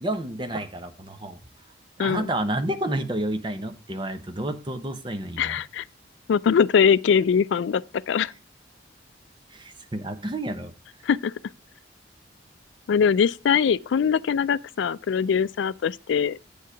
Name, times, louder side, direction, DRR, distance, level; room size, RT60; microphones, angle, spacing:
voice 1, 0.0-1.4 2.0-5.6 9.5-10.7, right 1 dB, 25° right, 0.7 m, -30 dB
voice 2, 2.0-2.3 5.4-5.8 6.3-8.3 11.0-11.3 12.9-16.4, left 7 dB, 85° left, 0.3 m, -22 dB
8.4 x 4.6 x 5.0 m
head